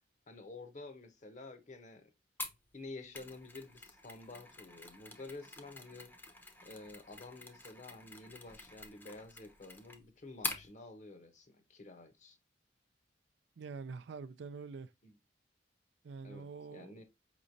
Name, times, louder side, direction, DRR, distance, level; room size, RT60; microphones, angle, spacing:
voice 1, 0.3-2.1 2.7-6.1 6.6-12.4 15.0-15.1 16.2-17.0, left 3 dB, 45° left, 0.8 m, -50 dB
Mechanisms, 2.4-10.7, left 2 dB, 10° left, 0.7 m, -46 dB
voice 2, 13.6-14.9 16.0-17.0, right 4 dB, 70° right, 0.4 m, -46 dB
5.0 x 3.1 x 2.5 m
head